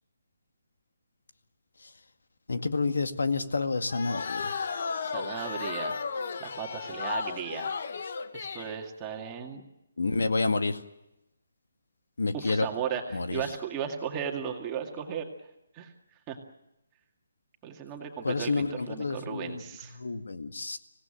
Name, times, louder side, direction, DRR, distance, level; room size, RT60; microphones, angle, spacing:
voice 1, 2.5-4.5 10.0-10.8 12.2-12.7 13.1-13.4 18.2-19.6 20.0-20.8, left 3 dB, 90° left, 8 dB, 2.0 m, -29 dB
sound 1, 3.9-8.8, left 5 dB, 45° left, 1.2 m, -34 dB
voice 2, 5.0-6.0 6.4-7.7 8.3-9.6 12.3-15.3 15.7-15.9 16.3-16.4 17.6-20.0, right 8 dB, 15° right, 3 dB, 2.1 m, -36 dB
25.0 x 17.5 x 9.0 m, 0.89 s
hypercardioid pair, 175°, 0 cm